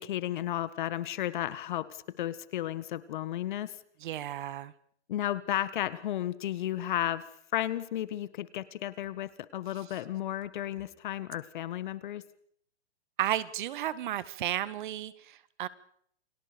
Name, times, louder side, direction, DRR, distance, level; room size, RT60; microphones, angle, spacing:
voice 1, 0.0-3.8 5.1-7.3 7.5-12.2, left 12 dB, 45° left, 16 dB, 1.6 m, -33 dB
voice 2, 4.0-4.7 13.2-15.7, right 12 dB, 45° right, 16 dB, 1.7 m, -33 dB
29.5 x 22.5 x 5.2 m, 0.65 s
hypercardioid pair, 145°, 33 cm